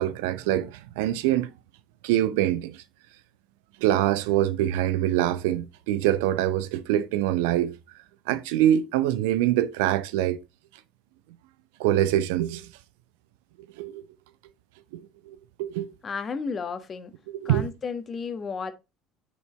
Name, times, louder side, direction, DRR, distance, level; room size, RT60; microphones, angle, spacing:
voice 1, 0.0-1.5 2.0-2.8 3.8-7.7 8.3-10.4 11.8-12.7 13.8-14.0 14.9-15.9 17.4-17.7, right 12 dB, 70° right, 0.6 m, -24 dB
voice 2, 16.0-17.1 17.4-18.7, left 5 dB, 35° left, 1.3 m, -33 dB
6.4 x 5.4 x 3.3 m
figure-of-eight pair, 60°, 0 cm